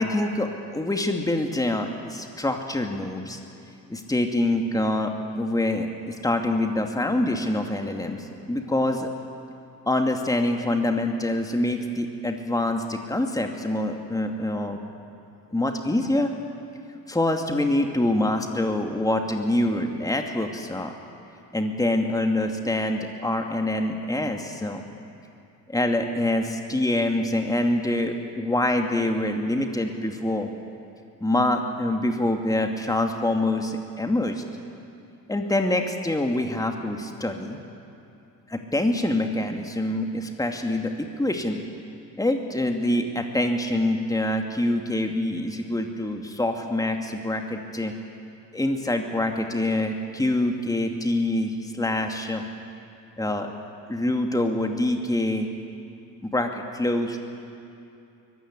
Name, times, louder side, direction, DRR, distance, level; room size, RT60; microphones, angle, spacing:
voice 1, 0.0-3.4 3.9-9.1 9.9-14.8 15.5-16.3 17.1-20.9 21.5-24.8 25.7-30.5 31.2-34.4 35.3-37.6 38.5-41.6 42.2-47.9 48.5-52.4 53.2-53.5 53.9-55.5 56.2-57.2, left 1 dB, 5° left, 4 dB, 2.5 m, -25 dB
25.0 x 19.5 x 9.8 m, 2.7 s
figure-of-eight pair, 50°, 49 cm